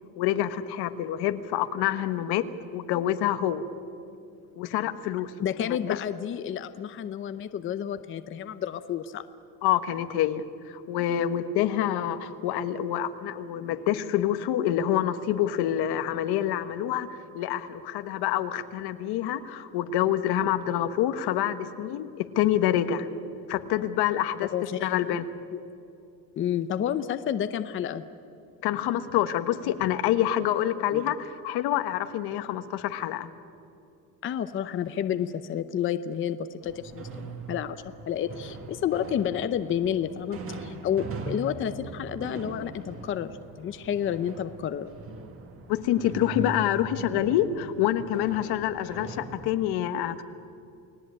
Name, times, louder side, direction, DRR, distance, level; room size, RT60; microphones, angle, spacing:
voice 1, 0.2-2.5 2.7-3.6 4.6-5.3 5.6-6.0 9.6-23.1 23.5-25.2 28.6-33.3 45.7-50.2, left 11 dB, 80° left, 10 dB, 1.5 m, -27 dB
voice 2, 5.4-9.2 24.5-25.2 25.5-25.6 26.4-28.0 30.9-31.0 34.2-44.9, left 9 dB, 30° left, 11 dB, 0.7 m, -30 dB
sound 1, 36.6-49.6, right 3 dB, 35° right, 2.1 m, -41 dB
29.5 x 18.5 x 8.7 m, 2.7 s
cardioid pair, 170°, 38 cm